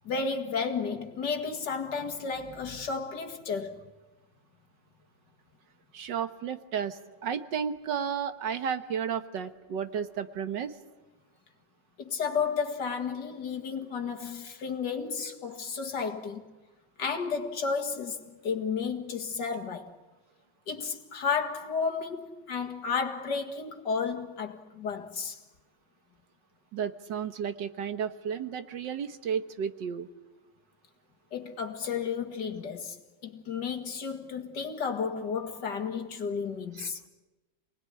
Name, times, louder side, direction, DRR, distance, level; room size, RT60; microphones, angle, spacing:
voice 1, 0.0-3.9 12.0-16.5 17.0-19.9 20.7-25.4 31.3-37.0, left 5 dB, 75° left, 2.5 m, -32 dB
voice 2, 5.9-10.7 26.7-30.1 36.8-36.9, right 7 dB, 85° right, 1.9 m, -33 dB
28.0 x 19.5 x 9.9 m
omnidirectional pair, 1.9 m